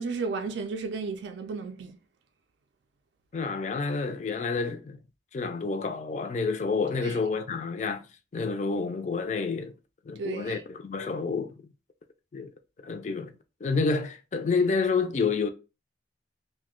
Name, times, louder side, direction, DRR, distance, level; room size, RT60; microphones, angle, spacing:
voice 1, 0.0-2.0 7.0-7.2 10.2-10.6, right 4 dB, 70° right, 0.4 m, -33 dB
voice 2, 3.3-5.0 5.3-8.0 8.3-9.7 10.1-11.5 12.3-12.5 12.8-13.3 13.6-15.5, left 4 dB, 40° left, 0.3 m, -29 dB
2.7 x 2.1 x 3.6 m
head